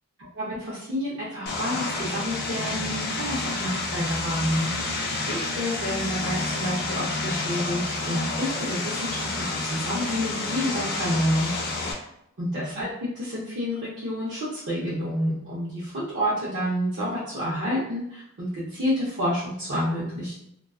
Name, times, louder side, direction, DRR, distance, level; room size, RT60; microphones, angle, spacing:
voice 1, 0.2-4.7 5.2-11.5 12.4-20.4, equal, 50° right, -9 dB, 0.6 m, -29 dB
Vehicle, 1.5-11.9, left 2 dB, 45° left, 0.4 m, -29 dB
2.4 x 2.2 x 2.3 m, 0.75 s
head